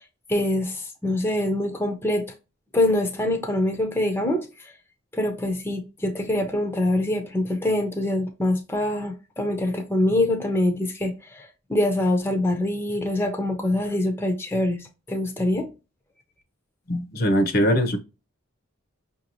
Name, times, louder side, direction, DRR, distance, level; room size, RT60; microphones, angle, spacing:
voice 1, 0.3-2.3 2.7-4.7 5.1-15.7, left 1 dB, 10° left, 0.6 m, -24 dB
voice 2, 16.9-18.0, equal, 45° left, 0.7 m, -21 dB
5.7 x 2.7 x 2.9 m
head